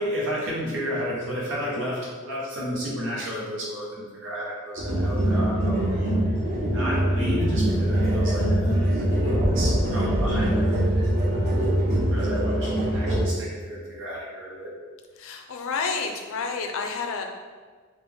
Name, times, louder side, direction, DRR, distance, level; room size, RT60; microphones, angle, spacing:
voice 1, 0.0-6.1 6.7-8.7 9.1-10.7 11.1-11.4 12.1-14.7, equal, 60° right, -6 dB, 1.2 m, -32 dB
sound 1, 4.8-13.2, right 1 dB, 35° right, 1.0 m, -23 dB
voice 2, 15.2-17.2, left 5 dB, 65° left, 3 dB, 0.5 m, -30 dB
4.1 x 2.5 x 3.6 m, 1.5 s
head